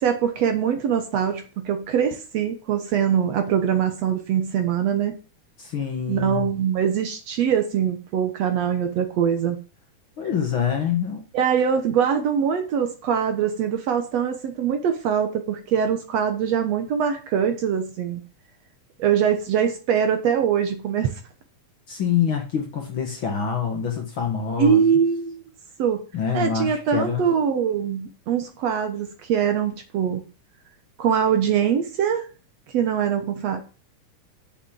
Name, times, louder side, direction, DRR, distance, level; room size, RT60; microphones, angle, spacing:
voice 1, 0.0-5.2 6.1-9.6 11.3-18.2 19.0-21.1 24.6-25.4 25.8-26.0 26.3-30.2 31.0-32.3 32.7-33.6, right 8 dB, 65° right, 2.0 m, -23 dB
voice 2, 5.6-6.5 10.2-11.2 21.9-24.8 26.1-27.2, left 7 dB, 50° left, 1.8 m, -25 dB
7.1 x 6.9 x 7.4 m
omnidirectional pair, 3.6 m